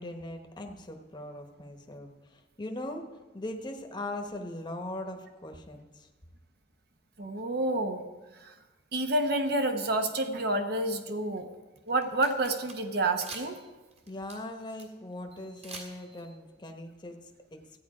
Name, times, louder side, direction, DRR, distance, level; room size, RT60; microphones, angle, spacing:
voice 1, 0.0-3.1 3.3-6.1 14.1-17.6, left 1 dB, 25° left, 3 dB, 1.0 m, -40 dB
voice 2, 7.2-8.0 8.4-8.5 8.9-11.5 11.9-13.6, right 2 dB, 60° right, 6 dB, 1.0 m, -29 dB
sound 1, 11.8-12.8 13.2-13.6 13.9-14.8 15.3-16.3, right 3 dB, 35° right, 1.7 m, -46 dB
14.0 x 9.0 x 4.9 m, 1.2 s
head